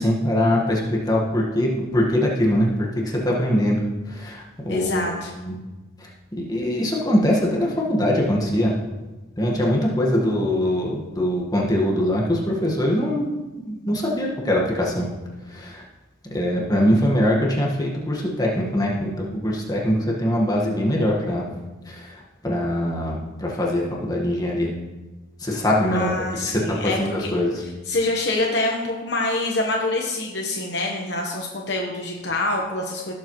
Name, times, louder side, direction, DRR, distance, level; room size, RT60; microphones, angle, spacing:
voice 1, 0.0-2.7 3.0-5.1 5.4-5.5 6.0-6.1 6.5-8.8 9.4-15.1 15.5-15.8 16.3-21.4 21.9-24.7 25.4-26.1 26.4-27.6, equal, 20° left, -3 dB, 1.5 m, -22 dB
voice 2, 4.7-5.3 25.9-27.3 27.9-33.1, left 2 dB, 60° left, 0 dB, 1.1 m, -26 dB
17.5 x 7.4 x 3.1 m, 1.2 s
head